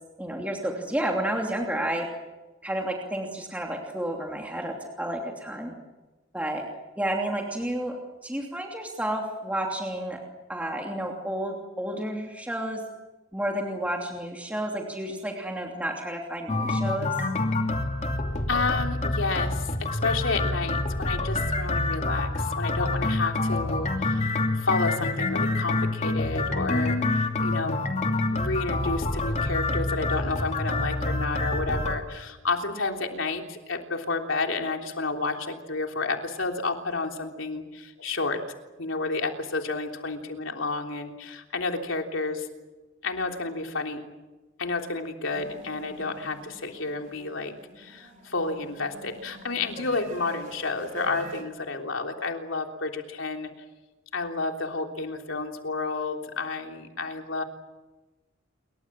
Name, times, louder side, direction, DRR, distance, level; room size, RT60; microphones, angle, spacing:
voice 1, 0.2-2.1 2.6-5.7 6.3-6.6 7.0-8.0 8.2-10.2 10.5-12.8 13.3-17.1, right 1 dB, 10° right, 0 dB, 2.9 m, -31 dB
sound 1, 16.5-32.0, left 2 dB, 35° left, 2.8 m, -27 dB
voice 2, 18.5-27.8 28.3-38.4 38.8-42.5 43.0-44.0 44.6-53.5 54.1-57.4, left 3 dB, 80° left, 3 dB, 3.4 m, -31 dB
sound 2, 45.3-51.4, right 2 dB, 45° right, 4.8 m, -45 dB
28.5 x 23.5 x 7.6 m, 1.1 s
head